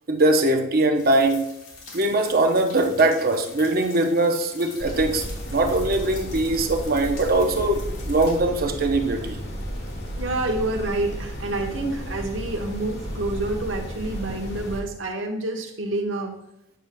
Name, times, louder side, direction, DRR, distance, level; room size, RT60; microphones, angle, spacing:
voice 1, 0.1-1.4 1.9-5.2 5.5-9.4, right 2 dB, 45° right, 4 dB, 0.7 m, -21 dB
sound 1, 0.9-8.4, left 4 dB, 85° left, 2.1 m, -45 dB
sound 2, 4.8-14.8, equal, 55° left, 1.5 m, -33 dB
voice 2, 10.2-16.3, right 2 dB, 65° right, 3 dB, 1.1 m, -28 dB
8.8 x 6.7 x 2.2 m, 0.84 s
head